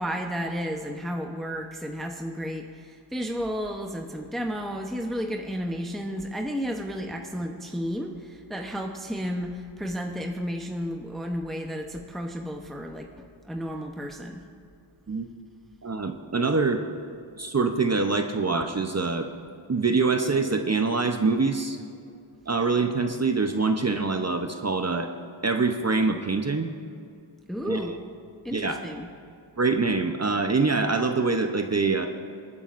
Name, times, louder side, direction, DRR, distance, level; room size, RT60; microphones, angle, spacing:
voice 1, 0.0-14.4 27.5-28.0 28.4-29.1, equal, ahead, 2 dB, 0.8 m, -32 dB
voice 2, 15.8-16.8 17.4-19.3 19.7-21.8 22.5-25.1 25.4-26.7 27.6-27.8 28.5-28.8 29.6-32.1, right 4 dB, 35° right, 6 dB, 0.7 m, -24 dB
24.0 x 9.7 x 2.6 m, 2.5 s
wide cardioid pair, 60°, 48 cm